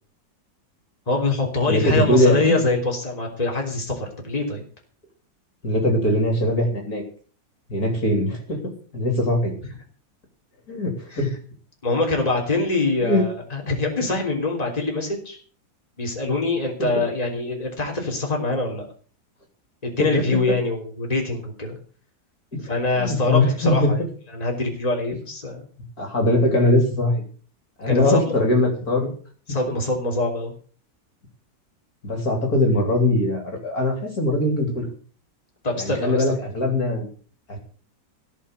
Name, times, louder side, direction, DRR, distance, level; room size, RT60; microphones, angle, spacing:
voice 1, 1.1-4.6 11.1-11.2 11.8-15.4 16.0-18.9 19.8-21.8 22.6-24.0 24.3-25.6 27.9-28.2 29.5-30.5 35.6-36.4, left 2 dB, 20° left, 0 dB, 3.5 m, -24 dB
voice 2, 1.7-2.6 5.6-7.0 7.7-8.6 8.9-9.5 10.7-11.3 13.0-13.3 20.0-20.6 22.5-22.6 22.9-23.9 26.0-27.2 27.8-29.1 32.0-34.9 35.8-37.1 37.5-37.6, left 1 dB, 50° left, 2 dB, 3.9 m, -21 dB
16.5 x 6.1 x 8.1 m, 0.42 s
omnidirectional pair, 2.0 m